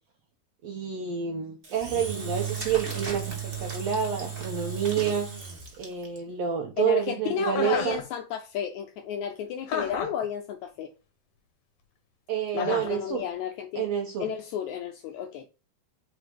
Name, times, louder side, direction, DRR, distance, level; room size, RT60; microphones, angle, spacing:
voice 1, 0.6-5.3 5.8-8.0 12.3-13.2 13.7-14.3, right 8 dB, 75° right, 1.5 m, -29 dB
Engine / Drill, 1.6-6.2, right 7 dB, 45° right, 0.7 m, -35 dB
voice 2, 6.8-10.9 12.5-13.9 14.2-15.5, left 8 dB, 80° left, 1.7 m, -32 dB
Chuckle chortle, 7.5-8.0 9.7-10.2 12.6-13.0, left 7 dB, 65° left, 2.2 m, -32 dB
5.1 x 4.3 x 5.0 m
omnidirectional pair, 3.8 m